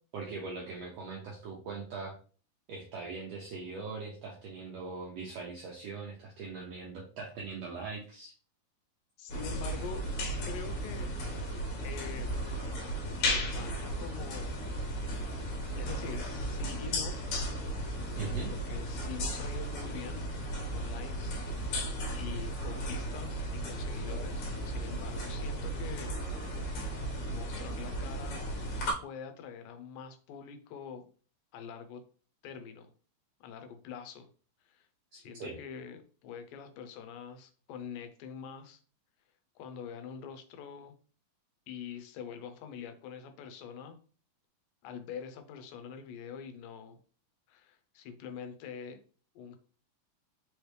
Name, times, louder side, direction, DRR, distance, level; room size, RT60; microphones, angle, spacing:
voice 1, 0.1-2.1 2.7-8.3 18.2-18.5 35.4-35.6, right 4 dB, 75° right, -2 dB, 1.5 m, -41 dB
voice 2, 9.2-10.0 10.4-11.1 11.8-12.4 13.2-14.6 15.3-15.5 15.7-17.2 18.2-20.3 20.7-26.1 27.3-28.4 29.0-31.1 31.5-32.0 32.4-32.9 33.4-34.3 34.7-34.9 35.1-38.8 39.6-40.9 41.7-44.0 44.8-47.0 47.5-49.0 49.4-49.6, left 7 dB, 85° left, 8 dB, 2.3 m, -45 dB
sound 1, 9.3-28.9, equal, 65° left, 2.3 m, -35 dB
5.3 x 3.1 x 3.2 m, 0.40 s
omnidirectional pair, 3.9 m